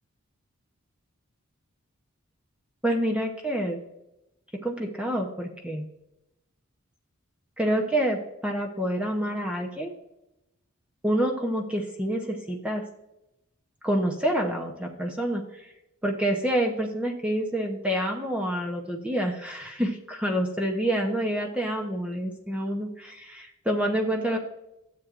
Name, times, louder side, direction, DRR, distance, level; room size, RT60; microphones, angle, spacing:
voice 1, 2.8-3.8 4.6-5.9 7.6-9.9 11.0-12.8 13.8-15.7 16.0-22.9 23.2-24.4, right 1 dB, 5° right, 1 dB, 0.7 m, -27 dB
13.0 x 7.5 x 2.5 m, 0.88 s
head